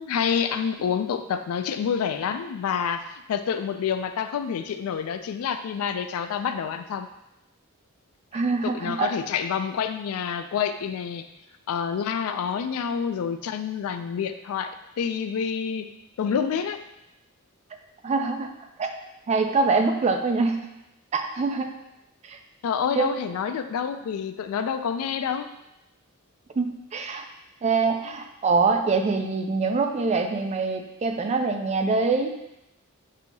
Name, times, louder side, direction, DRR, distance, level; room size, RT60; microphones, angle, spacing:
voice 1, 0.0-7.1 8.6-11.2 11.7-15.9 16.2-16.8 22.6-25.5, left 7 dB, 75° left, 10 dB, 0.3 m, -28 dB
voice 2, 8.3-9.1 18.0-18.5 18.8-18.9 19.3-20.7 21.1-21.7 22.2-22.4 22.9-23.1 26.6-27.2 27.6-32.3, right 4 dB, 30° right, 5 dB, 0.3 m, -24 dB
6.2 x 2.7 x 2.7 m, 0.89 s
head